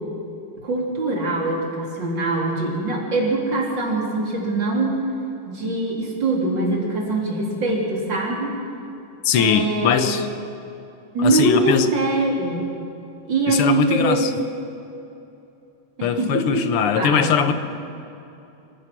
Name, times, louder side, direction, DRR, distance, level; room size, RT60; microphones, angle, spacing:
voice 1, 0.6-5.0 5.5-8.6 9.3-10.1 11.1-12.7 13.3-14.3 16.0-17.5, right 2 dB, 55° right, -2 dB, 4.1 m, -23 dB
voice 2, 9.2-10.3 11.2-11.9 13.5-14.3 16.0-17.5, left 7 dB, 85° left, 9 dB, 1.9 m, -21 dB
27.0 x 16.0 x 6.1 m, 2.8 s
omnidirectional pair, 2.4 m